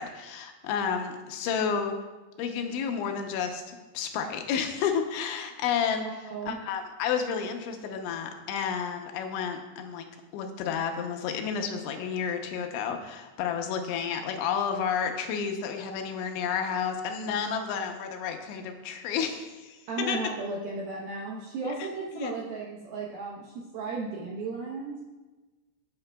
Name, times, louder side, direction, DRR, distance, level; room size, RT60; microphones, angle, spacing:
voice 1, 0.0-1.9 2.4-6.1 6.5-10.1 10.3-19.8 20.1-20.2 21.6-21.9 22.1-22.3, left 7 dB, 80° left, 4 dB, 3.0 m, -31 dB
voice 2, 6.0-6.6 19.9-25.0, right 3 dB, 80° right, -3 dB, 2.2 m, -35 dB
15.5 x 8.6 x 2.3 m, 1.2 s
omnidirectional pair, 5.5 m